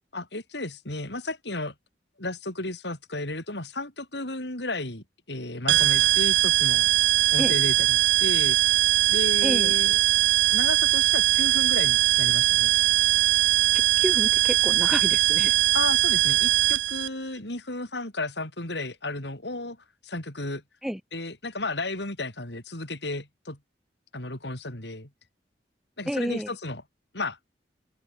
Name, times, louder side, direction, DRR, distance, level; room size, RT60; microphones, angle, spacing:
voice 1, 0.1-1.7 2.2-6.9 7.3-8.6 9.1-10.2 10.5-12.7 15.7-19.8 20.0-20.6 21.1-23.6 24.1-25.1 26.0-26.8 27.1-27.4, left 2 dB, 70° left, 5.1 m, -33 dB
sound 1, 5.7-17.1, right 14 dB, 85° right, 0.6 m, -21 dB
voice 2, 9.4-9.7 14.0-15.5 20.8-21.0 26.1-26.5, equal, ahead, 2.6 m, -30 dB
open air
head